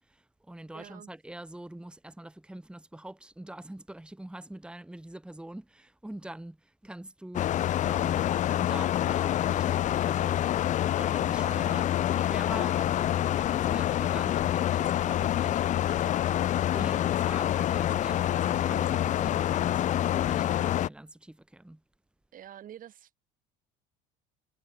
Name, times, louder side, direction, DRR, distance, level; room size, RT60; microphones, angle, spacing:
voice 1, 0.0-8.3 8.6-10.5 10.9-11.9 12.2-15.9 16.7-21.8, right 1 dB, 5° right, 2.3 m, -44 dB
voice 2, 0.7-1.1 11.4-11.8 15.9-17.2 22.3-23.3, right 11 dB, 50° right, 4.4 m, -49 dB
sound 1, 7.3-20.9, left 12 dB, 45° left, 0.5 m, -27 dB
supercardioid pair, 90°, 18 cm